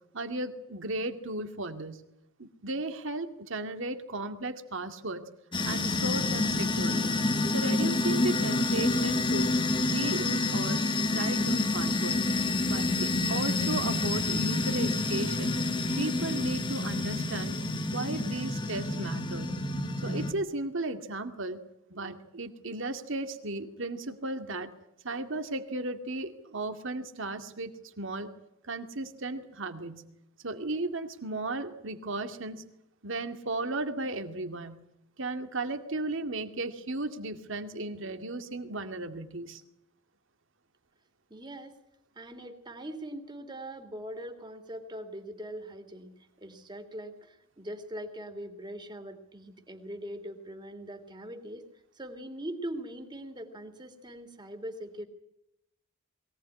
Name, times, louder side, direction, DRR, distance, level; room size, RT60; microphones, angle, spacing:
voice 1, 0.1-2.0 2.4-5.2 5.6-7.2 7.5-9.5 9.9-10.8 11.1-12.3 12.7-15.6 16.0-17.6 17.9-19.6 20.0-21.6 21.9-24.7 25.0-27.7 28.0-28.3 28.6-30.1 30.4-32.7 33.0-34.8 35.2-39.6, right 2 dB, 60° right, 8 dB, 2.2 m, -35 dB
sound 1, 5.5-20.3, left 2 dB, 20° left, 1.6 m, -28 dB
voice 2, 41.3-41.8 42.1-46.1 46.4-51.7 51.9-55.0, right 1 dB, 20° right, 6 dB, 2.9 m, -41 dB
22.5 x 18.0 x 9.7 m, 0.84 s
head